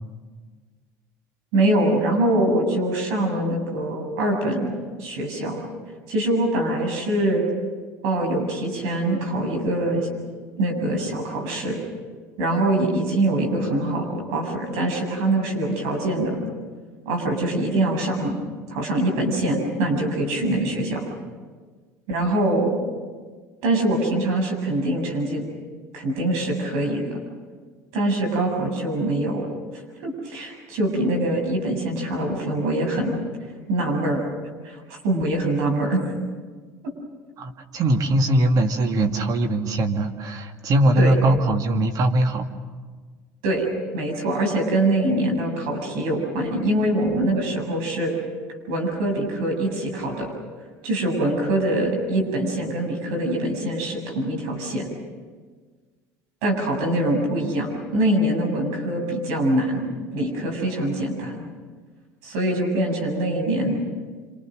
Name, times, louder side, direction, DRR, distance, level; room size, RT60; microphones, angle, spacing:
voice 1, 1.5-5.6 6.1-7.4 8.0-10.1 10.6-11.8 12.4-16.4 17.1-18.4 18.7-21.1 22.1-22.8 23.6-25.4 25.9-27.2 27.9-29.5 30.0-33.1 33.7-34.2 34.6-36.0 41.0-41.2 43.4-43.7 43.9-48.1 48.7-50.3 50.8-54.9 56.4-59.9 60.1-61.4 62.2-63.8, right 1 dB, 75° right, 2 dB, 7.6 m, -24 dB
voice 2, 37.4-42.5, right 1 dB, 50° right, 5 dB, 2.3 m, -21 dB
27.5 x 26.5 x 6.5 m, 1.5 s
hypercardioid pair, 85°, 8 cm